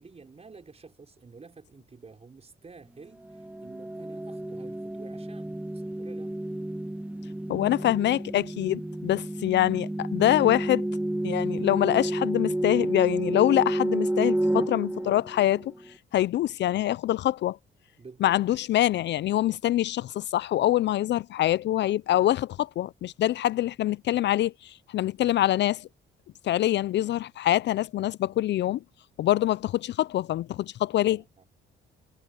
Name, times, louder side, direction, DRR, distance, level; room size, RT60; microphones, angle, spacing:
voice 1, 0.0-6.4 18.0-18.4 31.0-31.4, right 4 dB, 30° right, 5.5 m, -50 dB
sound 1, 3.2-15.9, right 1 dB, 5° right, 1.5 m, -31 dB
voice 2, 7.5-10.9 11.2-15.7 16.1-17.6 18.2-25.9 26.4-28.8 29.2-31.2, left 13 dB, 65° left, 0.4 m, -25 dB
cardioid pair, 90°, 20 cm